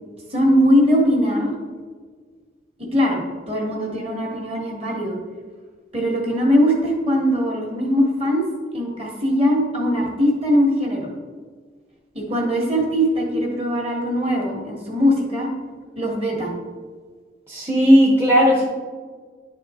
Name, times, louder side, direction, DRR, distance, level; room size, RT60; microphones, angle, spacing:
voice 1, 0.3-1.5 2.8-5.2 5.9-8.4 8.7-11.1 12.1-15.5 15.9-16.6, equal, 35° right, 0 dB, 1.5 m, -20 dB
voice 2, 17.5-18.6, equal, 15° right, -4 dB, 0.8 m, -15 dB
10.0 x 4.4 x 3.6 m, 1.5 s
head